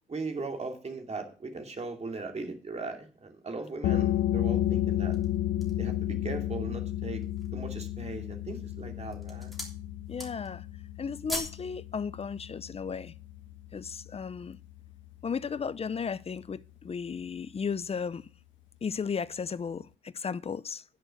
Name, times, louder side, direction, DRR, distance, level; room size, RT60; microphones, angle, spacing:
voice 1, 0.1-5.2 5.8-7.2 7.5-9.5, right 3 dB, 35° right, 2.6 m, -38 dB
sound 1, 3.8-15.2, left 13 dB, 70° left, 0.6 m, -32 dB
sound 2, 4.9-5.9 6.5-6.6 7.1-7.6 8.3-8.7 9.0-9.8 10.1-10.6 10.9-11.6 12.0-12.1, left 1 dB, ahead, 3.2 m, -39 dB
voice 2, 10.1-10.7 11.0-13.1 13.7-14.6 15.2-18.2 18.8-20.8, left 6 dB, 30° left, 0.6 m, -35 dB
10.0 x 6.6 x 6.5 m
cardioid pair, 90°, 20 cm